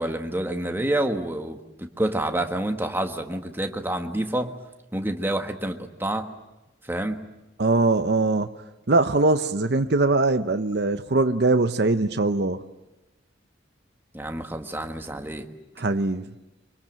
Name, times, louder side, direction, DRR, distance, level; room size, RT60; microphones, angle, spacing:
voice 1, 0.0-4.5 4.9-6.3 6.8-7.2 14.1-15.5, right 1 dB, 10° right, 1.5 m, -28 dB
voice 2, 7.6-8.5 8.9-12.6 15.8-16.2, right 3 dB, 60° right, 0.8 m, -21 dB
24.5 x 24.5 x 7.6 m
head